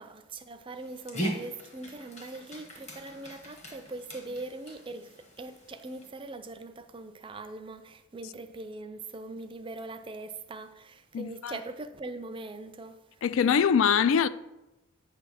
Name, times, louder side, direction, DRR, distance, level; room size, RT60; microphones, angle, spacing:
voice 1, 0.0-12.9, right 2 dB, 25° right, 0.4 m, -41 dB
Dog, 0.8-6.1, equal, 30° left, 1.0 m, -40 dB
voice 2, 11.1-11.6 13.2-14.3, left 7 dB, 60° left, 0.3 m, -23 dB
8.8 x 3.4 x 6.2 m
head